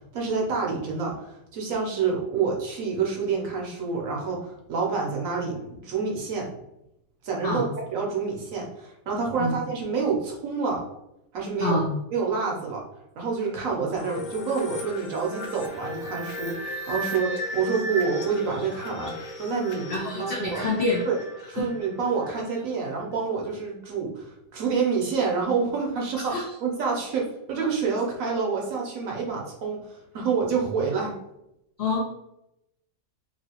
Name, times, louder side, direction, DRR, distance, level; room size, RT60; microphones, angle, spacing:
voice 1, 0.1-6.5 7.2-10.8 11.3-11.8 12.1-12.8 13.2-19.9 20.2-20.6 21.1-21.2 21.5-31.1, right 5 dB, 65° right, -1 dB, 1.0 m, -28 dB
voice 2, 11.6-11.9 19.9-21.0 21.6-21.7 26.3-26.4 31.8-32.1, left 2 dB, 85° left, -2 dB, 0.5 m, -26 dB
sound 1, 14.0-22.6, left 1 dB, 55° left, 0.9 m, -36 dB
3.0 x 2.7 x 2.8 m, 0.84 s
omnidirectional pair, 1.7 m